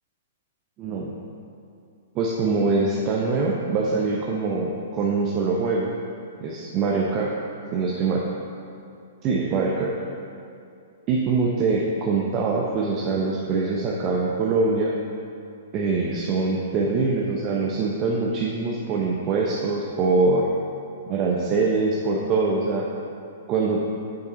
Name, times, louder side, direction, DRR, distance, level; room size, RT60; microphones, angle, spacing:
voice 1, 0.8-1.2 2.1-5.9 6.4-7.3 7.7-8.3 9.2-9.9 11.1-14.9 15.7-20.5 21.1-22.9 23.5-23.9, right 3 dB, 35° right, -2 dB, 0.8 m, -23 dB
9.0 x 5.8 x 4.0 m, 2.5 s
figure-of-eight pair, 110°, 0 cm